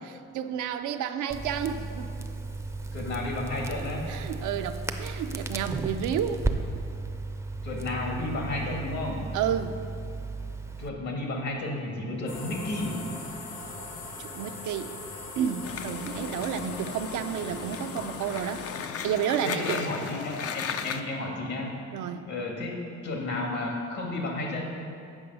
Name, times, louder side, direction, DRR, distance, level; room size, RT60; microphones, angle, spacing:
voice 1, 0.0-2.2 3.8-6.4 9.3-9.8 14.2-14.9 15.4-18.6 19.0-19.8 21.9-22.2, right 8 dB, 75° right, 8 dB, 0.5 m, -31 dB
Crackle, 1.3-10.9, right 3 dB, 10° right, 0.5 m, -34 dB
voice 2, 2.9-4.1 7.6-9.3 10.8-13.1 19.4-21.8 22.3-24.7, left 2 dB, 65° left, 0 dB, 1.8 m, -32 dB
sound 1, 12.3-18.9, left 2 dB, 85° left, 1.3 m, -40 dB
sound 2, 15.6-21.0, left 7 dB, 50° left, 0.5 m, -36 dB
8.2 x 5.4 x 5.4 m, 2.4 s
cardioid pair, 90°, 30 cm